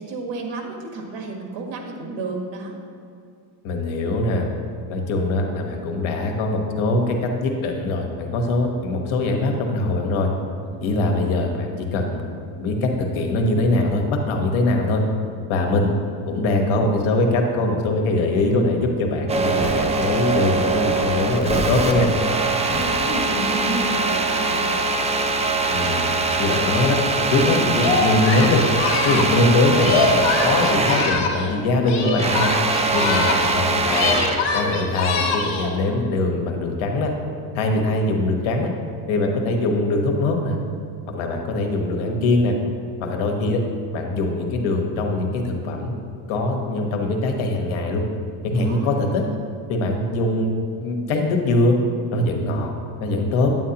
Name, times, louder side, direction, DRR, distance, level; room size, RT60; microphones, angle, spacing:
voice 1, 0.0-2.8 10.7-10.9 22.6-24.9 37.8-38.0 48.5-49.4, right 3 dB, 65° right, 2 dB, 1.5 m, -31 dB
voice 2, 3.6-4.5 4.9-10.3 10.8-15.0 15.5-15.9 16.2-22.1 25.7-26.0 26.4-27.0 27.3-28.6 29.0-32.5 32.9-34.1 34.5-37.1 37.5-38.7 39.1-40.6 41.1-42.6 43.0-43.6 43.9-46.0 46.3-48.0 48.4-49.2 49.7-51.8 52.1-52.7 53.0-53.5, left 2 dB, 75° left, 2 dB, 1.4 m, -22 dB
sound 1, 19.3-31.3 31.6-34.5, right 3 dB, 15° right, 0.3 m, -22 dB
sound 2, 19.4-20.3 21.3-22.3 22.6-23.3, left 2 dB, 30° left, 2.1 m, -31 dB
Singing, 27.7-31.6 31.8-33.6 33.9-35.8, left 4 dB, 60° left, 1.2 m, -24 dB
9.3 x 9.0 x 2.9 m, 2.4 s
cardioid pair, 115°, 48 cm